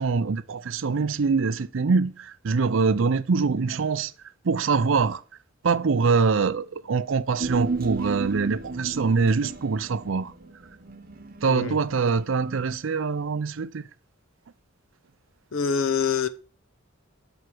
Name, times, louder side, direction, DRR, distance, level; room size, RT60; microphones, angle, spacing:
voice 1, 0.0-2.1 2.4-4.1 4.5-5.2 5.6-10.3 11.4-13.8, right 4 dB, 70° right, 0.5 m, -24 dB
Human voice, 7.4-12.0 12.3-12.4, right 3 dB, 45° right, 1.2 m, -33 dB
voice 2, 11.5-11.8 15.5-16.3, left 6 dB, 85° left, 0.8 m, -25 dB
8.0 x 5.8 x 6.1 m
head